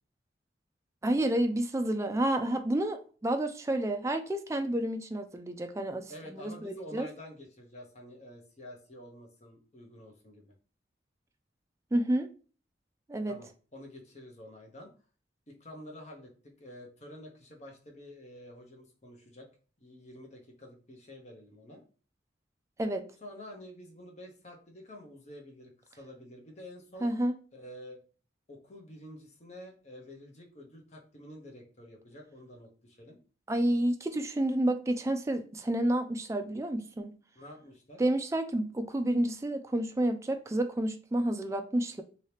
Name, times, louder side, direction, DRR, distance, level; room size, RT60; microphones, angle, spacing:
voice 1, 1.0-7.1 11.9-12.3 13.1-13.4 22.8-23.0 27.0-27.3 33.5-37.1 38.0-42.0, right 1 dB, 15° right, 0.3 m, -30 dB
voice 2, 6.1-10.4 13.3-14.9 15.5-19.5 19.8-21.8 23.2-27.1 27.5-28.0 28.5-33.2 37.4-38.0, left 1 dB, 35° left, 0.8 m, -49 dB
2.9 x 2.7 x 3.2 m
head